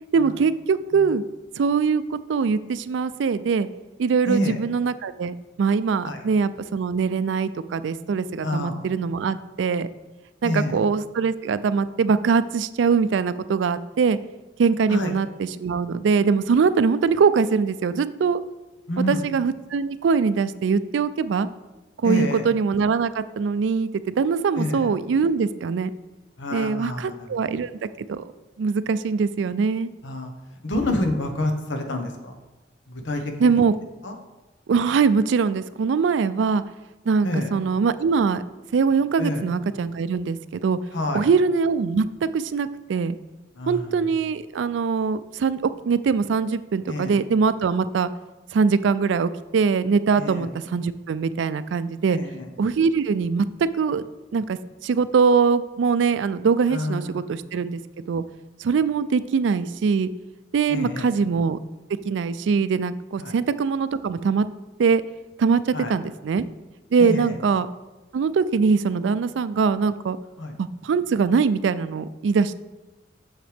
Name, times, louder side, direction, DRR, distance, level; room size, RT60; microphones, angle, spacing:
voice 1, 0.1-1.2 1.6-3.7 4.0-9.9 10.4-14.2 14.6-18.4 19.1-21.5 22.0-25.9 26.5-27.8 28.1-28.2 28.6-29.9 33.4-33.8 34.7-36.6 37.1-38.4 38.7-40.8 41.1-43.2 43.7-48.1 48.5-52.2 52.6-54.0 54.3-57.8 58.1-58.2 58.6-60.1 60.5-61.6 62.0-64.5 64.8-65.0 65.4-66.4 66.9-67.7 68.1-70.2 70.6-72.5, right 5 dB, 80° right, 15 dB, 0.3 m, -22 dB
voice 2, 4.2-4.6 6.0-6.2 8.4-8.8 10.4-10.8 14.9-15.1 18.9-19.2 22.0-22.4 24.6-24.9 26.4-27.3 30.0-30.3 30.6-32.3 32.9-33.5 34.0-34.1 37.2-37.5 39.2-39.4 40.9-41.2 43.6-43.9 46.9-47.1 50.2-50.5 52.1-52.5 56.7-57.4 60.7-61.1 63.2-63.3 65.7-65.9 67.0-67.4 70.4-70.5, left 1 dB, 85° left, 5 dB, 1.1 m, -27 dB
7.7 x 6.5 x 3.4 m, 1.1 s
head